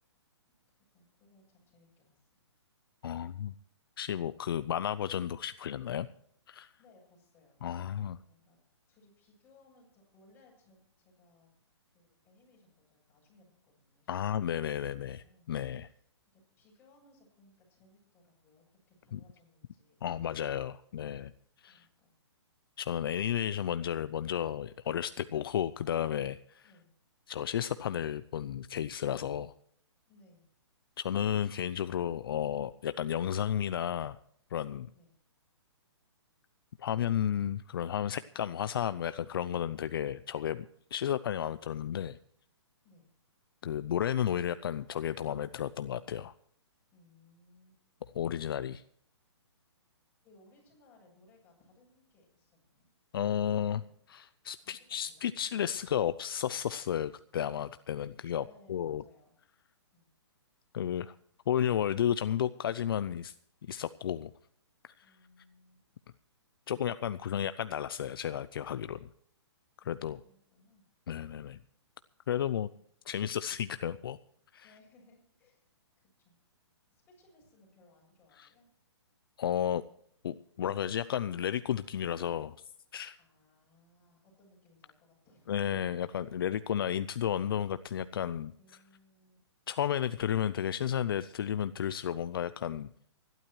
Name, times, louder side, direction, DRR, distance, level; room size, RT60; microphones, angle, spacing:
voice 1, 0.7-2.4 6.8-7.6 8.1-8.6 8.9-11.5 11.9-15.5 15.8-16.0 16.3-20.0 21.6-22.2 26.6-26.9 30.1-30.4 34.9-35.1 42.8-43.1 46.9-47.8 50.2-52.9 53.6-54.1 54.6-55.6 58.4-59.4 59.9-60.1 65.0-65.8 69.8-70.8 74.6-75.7 76.0-76.4 76.9-78.7 83.2-85.5 86.2-86.4 88.6-89.4, left 2 dB, 15° left, -3 dB, 7.7 m, -64 dB
voice 2, 3.0-3.5 4.0-6.1 6.5-6.7 7.6-8.2 14.1-15.9 19.1-19.2 20.0-21.3 21.6-21.9 22.8-26.7 27.3-29.5 31.0-34.2 34.5-34.9 36.8-42.2 43.6-46.3 48.1-48.8 53.1-53.8 54.1-58.4 58.7-59.0 60.7-61.1 61.5-63.3 63.7-64.3 65.0-65.1 66.7-69.1 69.8-70.2 71.1-71.6 72.3-72.7 73.1-74.2 74.5-74.7 78.4-78.5 79.4-79.8 80.2-82.6 82.9-83.2 85.5-88.5 89.7-92.9, left 9 dB, 55° left, 14 dB, 0.5 m, -33 dB
25.0 x 12.0 x 3.1 m, 0.64 s
hypercardioid pair, 160°, 15 cm